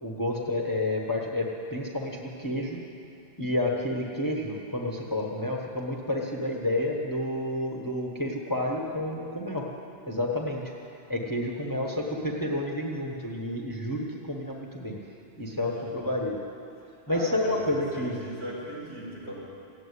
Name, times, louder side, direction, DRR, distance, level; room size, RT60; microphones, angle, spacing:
voice 1, 0.0-2.8 3.4-9.6 10.1-10.7 11.1-15.0 15.4-16.4 17.1-18.2, left 1 dB, 15° left, -1 dB, 1.2 m, -30 dB
voice 2, 15.3-15.9 17.1-19.3, equal, 65° right, -7 dB, 5.4 m, -39 dB
16.0 x 8.3 x 9.7 m, 2.6 s
omnidirectional pair, 1.2 m